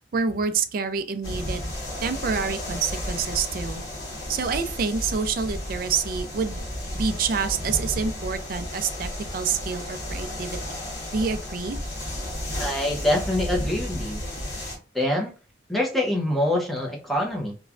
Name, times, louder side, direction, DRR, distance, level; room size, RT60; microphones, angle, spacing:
voice 1, 0.1-1.6 2.0-3.8 4.3-6.6 6.9-10.8 11.1-11.8, right 5 dB, 50° right, 9 dB, 0.4 m, -27 dB
sound 1, 1.2-14.8, left 1 dB, 55° left, 1.2 m, -33 dB
voice 2, 12.6-14.2 14.9-15.3 15.7-17.6, left 1 dB, ahead, -2 dB, 0.7 m, -25 dB
3.1 x 2.2 x 2.5 m, 0.36 s
head